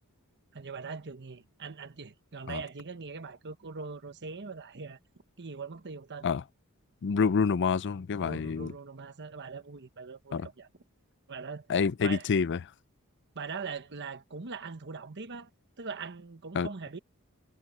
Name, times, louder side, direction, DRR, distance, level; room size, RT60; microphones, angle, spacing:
voice 1, 0.5-5.0 5.4-6.3 8.2-10.7 11.3-11.7 12.0-12.3 13.3-15.5 15.8-17.0, right 4 dB, 50° right, 1.1 m, -41 dB
voice 2, 7.0-8.7 10.3-10.5 11.7-12.6 16.5-16.7, left 5 dB, 50° left, 0.5 m, -27 dB
head